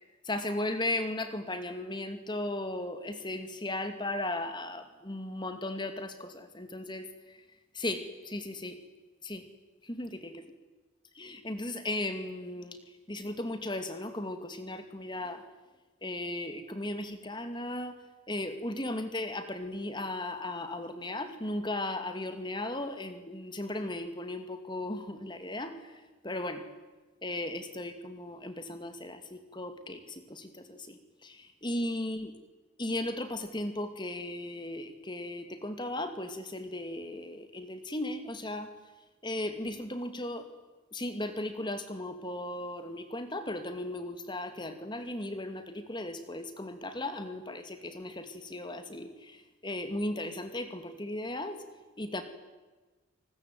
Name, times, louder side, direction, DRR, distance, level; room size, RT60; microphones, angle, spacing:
voice 1, 0.3-7.0 7.8-8.8 9.3-9.4 9.9-10.3 11.2-12.8 13.1-15.4 16.0-17.9 18.3-25.7 26.2-26.6 27.2-29.2 29.5-30.0 30.3-30.4 31.6-32.3 32.8-38.7 39.2-40.4 40.9-49.1 49.6-51.6 52.0-52.2, left 1 dB, 20° left, 8 dB, 2.4 m, -36 dB
28.0 x 20.5 x 9.3 m, 1.2 s
head